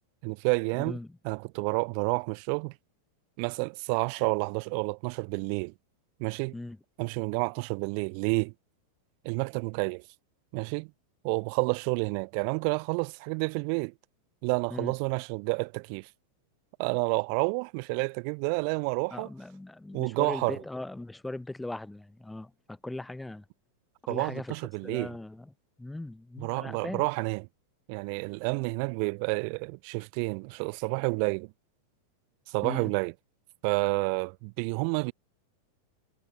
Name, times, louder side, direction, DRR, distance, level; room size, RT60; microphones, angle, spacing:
voice 1, 0.2-1.0 1.2-2.7 3.4-5.7 6.2-6.5 7.0-8.5 9.2-10.0 10.5-10.9 11.2-13.9 14.4-16.1 16.8-19.3 19.9-20.6 24.1-25.1 26.4-27.5 27.9-31.5 32.5-33.1 33.6-35.1, right 40 dB or more, 45° right, 0.5 m, -29 dB
voice 2, 0.8-1.1 6.5-6.8 14.7-14.9 19.1-23.4 24.0-25.5 25.8-27.0 32.6-32.9, left 2 dB, 5° left, 0.4 m, -39 dB
figure-of-eight pair, 90°, 0 cm